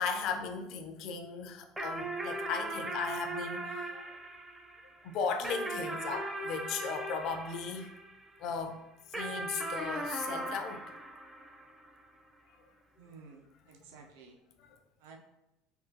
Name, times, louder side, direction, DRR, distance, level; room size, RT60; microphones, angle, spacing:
voice 1, 0.0-4.1 5.0-7.9 8.4-8.8 9.1-10.8 13.8-13.9, left 5 dB, 60° left, 6 dB, 0.4 m, -36 dB
sound 1, 1.8-8.5 9.1-11.9, right 2 dB, 15° right, 0.5 m, -39 dB
voice 2, 13.0-14.4 15.0-15.2, right 4 dB, 75° right, 2 dB, 0.5 m, -53 dB
3.6 x 2.4 x 2.7 m, 0.95 s
hypercardioid pair, 85°, 0 cm